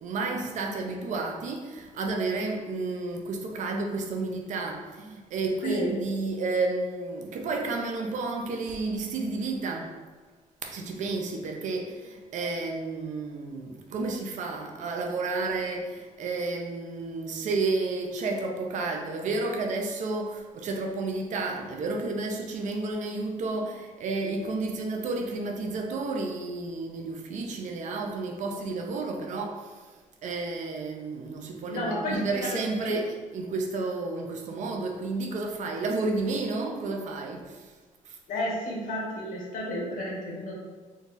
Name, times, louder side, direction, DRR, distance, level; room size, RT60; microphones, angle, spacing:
voice 1, 0.0-9.9 10.6-29.7 30.2-37.7 38.1-38.2, right 3 dB, 60° right, 2 dB, 0.5 m, -31 dB
voice 2, 31.7-33.0 38.3-40.5, left 1 dB, 85° left, -3 dB, 1.2 m, -32 dB
3.8 x 2.3 x 3.9 m, 1.4 s
cardioid pair, 180°, 14 cm